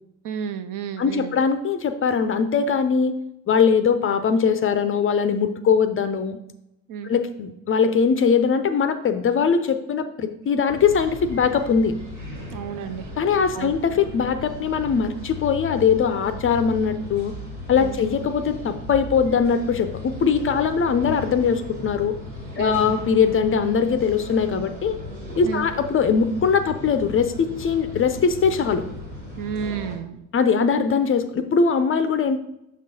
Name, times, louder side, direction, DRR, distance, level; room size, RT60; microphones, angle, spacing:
voice 1, 0.2-1.4 6.9-7.1 12.5-13.1 13.5-13.7 17.8-18.0 22.5-22.8 25.5-25.7 29.4-30.2, right 7 dB, 50° right, 11 dB, 0.5 m, -31 dB
voice 2, 1.0-3.2 3.5-6.4 7.0-12.0 13.2-17.3 17.7-22.2 22.6-25.0 25.4-28.8 30.3-32.4, left 6 dB, 30° left, 10 dB, 0.5 m, -21 dB
sound 1, 10.7-30.0, left 1 dB, 80° right, 2.0 m, -36 dB
6.1 x 6.0 x 2.8 m, 0.84 s
figure-of-eight pair, 50°, 43 cm